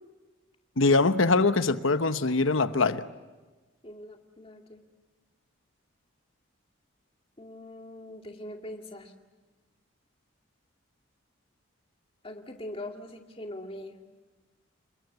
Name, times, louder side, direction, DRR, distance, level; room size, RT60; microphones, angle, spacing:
voice 1, 0.8-3.0, left 3 dB, 75° left, 11 dB, 1.1 m, -23 dB
voice 2, 3.8-4.8 7.4-9.1 12.2-14.0, left 1 dB, 30° left, 3 dB, 2.3 m, -42 dB
30.0 x 21.5 x 8.3 m, 1.2 s
head